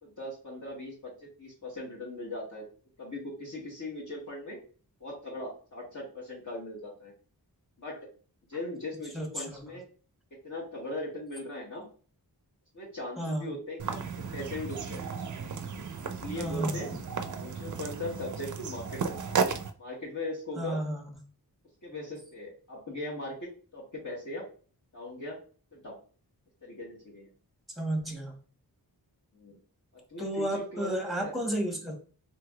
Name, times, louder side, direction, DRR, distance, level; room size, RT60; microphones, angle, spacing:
voice 1, 0.0-2.7 3.0-4.6 5.0-7.1 7.8-8.1 8.5-9.8 10.4-11.9 12.7-14.0 14.3-15.0 16.1-16.9 17.2-19.2 19.8-20.8 21.8-23.4 23.7-24.4 24.9-25.4 25.7-26.0 26.6-27.3 29.3-29.6 30.1-31.3, left 1 dB, 50° left, -6 dB, 1.2 m, -39 dB
voice 2, 9.1-9.4 13.2-13.4 16.4-17.0 20.6-21.1 27.8-28.3 30.2-31.9, right 1 dB, ahead, 1 dB, 1.0 m, -32 dB
sound 1, 13.8-19.7, right 6 dB, 50° right, 0.4 m, -34 dB
3.2 x 3.1 x 2.3 m, 0.39 s
wide cardioid pair, 80°, 39 cm